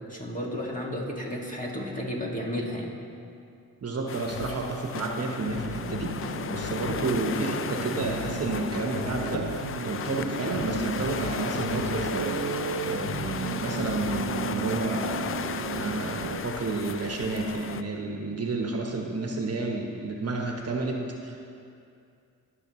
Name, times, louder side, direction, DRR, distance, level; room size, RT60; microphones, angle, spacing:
voice 1, 0.1-2.9, left 1 dB, 20° left, -3 dB, 2.1 m, -32 dB
voice 2, 3.8-15.4 15.7-21.4, right 3 dB, 45° right, 1 dB, 1.2 m, -31 dB
sound 1, 4.1-17.8, left 7 dB, 40° left, 0.4 m, -35 dB
sound 2, 4.3-4.5 5.0-5.1 5.5-7.1 7.5-7.7 8.0-9.6 10.0-10.2 10.5-12.1 12.5-12.7 13.0-14.3, left 8 dB, 90° left, 0.7 m, -39 dB
sound 3, 5.5-16.4, right 7 dB, 70° right, 0.6 m, -35 dB
17.5 x 6.5 x 3.1 m, 2.5 s
cardioid pair, 75°, 35 cm